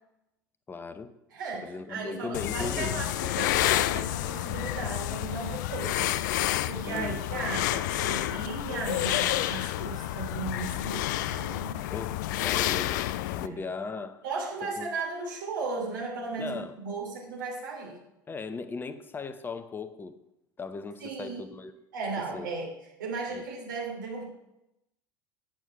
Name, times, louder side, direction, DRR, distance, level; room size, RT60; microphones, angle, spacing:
voice 1, 0.7-1.1 1.6-3.0 6.8-7.2 11.9-14.2 14.6-14.9 16.4-16.8 18.3-20.1 20.6-21.7 22.2-22.5 23.3-23.4, left 4 dB, 15° left, 11 dB, 0.7 m, -38 dB
voice 2, 1.3-6.1 6.4-11.9 13.4-13.6 14.2-18.0 21.0-21.5 21.9-22.7 23.0-24.3, right 4 dB, 65° right, -1 dB, 2.9 m, -36 dB
sound 1, 2.3-13.5, left 14 dB, 55° left, 0.4 m, -29 dB
9.1 x 6.3 x 5.6 m, 0.88 s
figure-of-eight pair, 75°, 12 cm